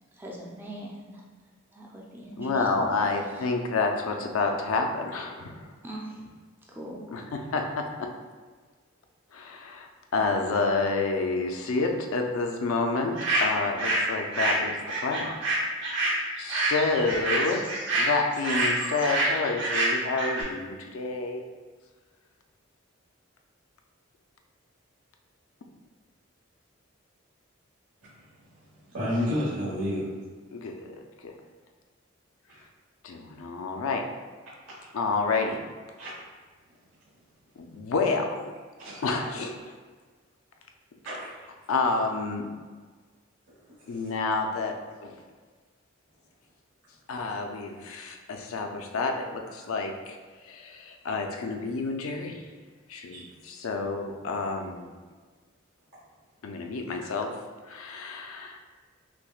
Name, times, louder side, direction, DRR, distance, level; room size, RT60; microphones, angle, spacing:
voice 1, 0.1-1.2 1.7-2.9 3.2-3.5 5.8-6.3 6.7-7.2, right 1 dB, 10° right, -3 dB, 0.4 m, -41 dB
voice 2, 2.4-5.7 7.1-8.1 9.3-15.3 16.4-21.4 30.5-31.3 33.0-34.0 34.9-35.7 37.6-38.5 39.0-39.5 41.7-42.5 43.9-44.8 45.0-45.1 47.1-50.2 50.4-52.4 52.9-54.9 56.4-57.3 57.7-58.6, left 3 dB, 80° left, 3 dB, 0.4 m, -29 dB
sound 1, 13.2-14.1 14.3-20.4, right 2 dB, 60° right, 1.0 m, -27 dB
voice 3, 28.9-30.1 32.5-32.6 34.8-34.9 36.0-36.1 38.8-39.0 41.0-41.3 43.9-44.0 53.1-53.2, left 1 dB, 80° right, -11 dB, 1.2 m, -30 dB
5.8 x 2.1 x 2.3 m, 1.5 s
head